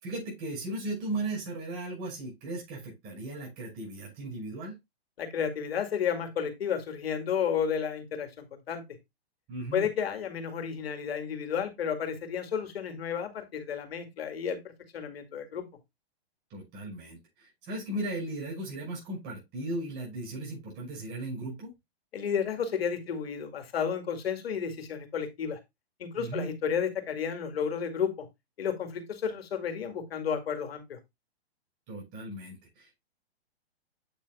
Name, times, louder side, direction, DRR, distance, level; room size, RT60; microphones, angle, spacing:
voice 1, 0.0-4.7 9.5-9.9 16.5-21.7 26.2-26.5 31.9-33.0, right 2 dB, 30° right, 5.9 m, -37 dB
voice 2, 5.2-8.8 9.7-14.6 14.9-15.6 22.1-25.6 26.0-28.3 28.6-31.0, left 7 dB, 70° left, 2.3 m, -32 dB
8.6 x 7.5 x 2.3 m
hypercardioid pair, 135°, 31 cm